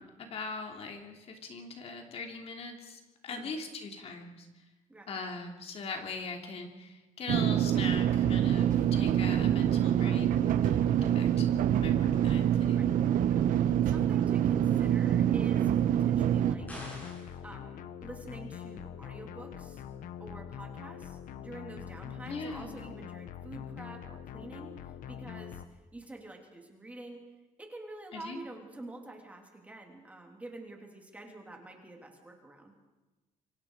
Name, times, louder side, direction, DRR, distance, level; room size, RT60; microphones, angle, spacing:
voice 1, 0.0-4.5 5.1-10.9 11.1-12.9 22.3-22.8 28.1-28.4, left 4 dB, 50° left, 3 dB, 3.0 m, -41 dB
sound 1, 7.3-16.5, right 10 dB, 85° right, 1.2 m, -26 dB
voice 2, 13.3-16.7 17.4-19.8 20.2-25.6 25.9-27.2 27.6-32.7, right 2 dB, 10° right, 2 dB, 3.2 m, -47 dB
sound 2, 16.6-25.7, left 9 dB, 85° left, 1.3 m, -44 dB
sound 3, 16.7-17.4, equal, 10° left, 7.1 m, -44 dB
27.5 x 24.5 x 4.9 m, 1.1 s
cardioid pair, 170°, 13 cm